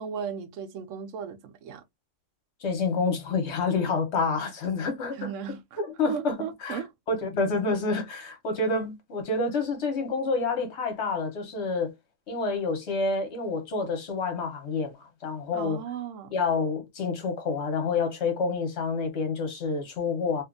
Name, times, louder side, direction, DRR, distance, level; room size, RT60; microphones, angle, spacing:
voice 1, 0.0-1.8 5.1-5.8 6.1-6.9 15.5-16.3, right 7 dB, 90° right, 1.0 m, -36 dB
voice 2, 2.6-5.3 5.8-6.8 7.1-11.9 12.3-15.0 15.2-15.8 16.3-20.4, left 4 dB, 65° left, 1.2 m, -28 dB
2.6 x 2.4 x 2.4 m
omnidirectional pair, 1.2 m